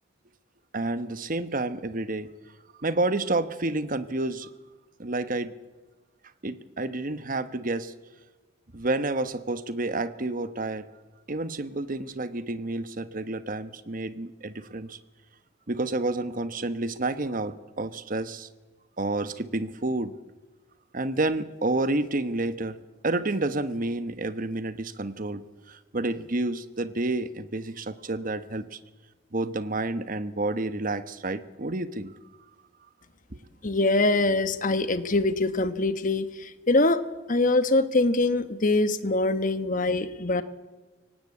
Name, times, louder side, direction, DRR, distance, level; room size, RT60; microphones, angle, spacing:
voice 1, 0.7-2.3 2.8-4.5 5.0-5.5 6.4-7.9 8.7-10.8 11.3-15.0 15.7-18.5 19.0-20.1 20.9-22.8 23.0-25.4 25.7-28.8 29.3-32.1 33.3-33.4, right 2 dB, 45° right, 12 dB, 1.1 m, -29 dB
voice 2, 33.6-37.0 37.3-40.4, left 2 dB, 40° left, 12 dB, 1.2 m, -23 dB
23.5 x 18.0 x 8.6 m, 1.3 s
head